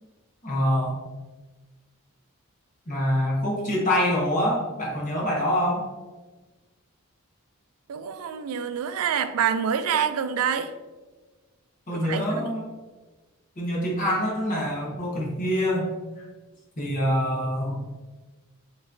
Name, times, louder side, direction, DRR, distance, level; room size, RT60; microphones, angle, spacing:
voice 1, 0.4-1.0 2.9-5.8 11.9-12.7 13.6-15.9 16.8-17.9, equal, 35° left, -4 dB, 1.2 m, -25 dB
voice 2, 7.9-10.7 11.9-12.5, right 7 dB, 75° right, 10 dB, 0.4 m, -27 dB
5.6 x 3.0 x 2.6 m, 1.3 s
head